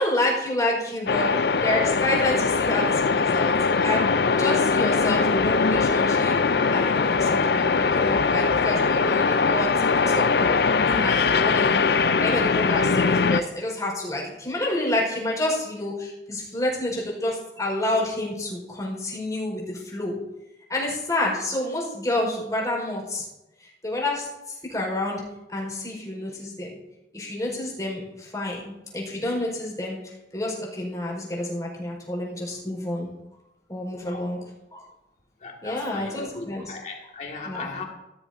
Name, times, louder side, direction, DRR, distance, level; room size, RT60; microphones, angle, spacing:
voice 1, 0.0-3.5 3.8-6.4 6.7-20.1 20.7-23.2 23.8-24.2 24.7-25.2 25.5-26.7 27.1-30.0 30.3-33.1 33.7-34.4 34.7-34.8 35.6-36.7 37.4-37.7, left 1 dB, 20° left, -2 dB, 4.8 m, -29 dB
sound 1, 1.1-13.4, left 4 dB, 60° left, 0.5 m, -21 dB
voice 2, 35.4-37.8, left 3 dB, 40° left, 0 dB, 2.1 m, -37 dB
16.0 x 13.0 x 2.7 m, 0.93 s
head